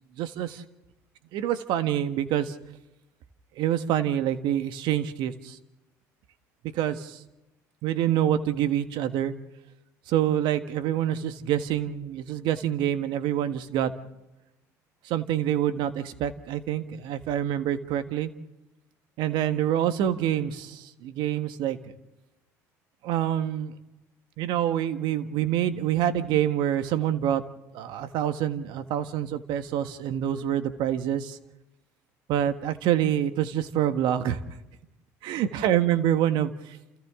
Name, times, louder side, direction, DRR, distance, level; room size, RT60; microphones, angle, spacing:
voice 1, 0.2-0.6 1.3-2.6 3.6-5.6 6.7-7.2 7.8-9.3 10.1-14.1 15.0-18.3 19.2-21.9 23.0-23.7 24.4-27.4 27.7-31.4 32.3-34.4 35.2-36.5, right 11 dB, 65° right, 10 dB, 1.5 m, -26 dB
29.5 x 29.0 x 3.8 m, 1.0 s
hypercardioid pair, 65°, 8 cm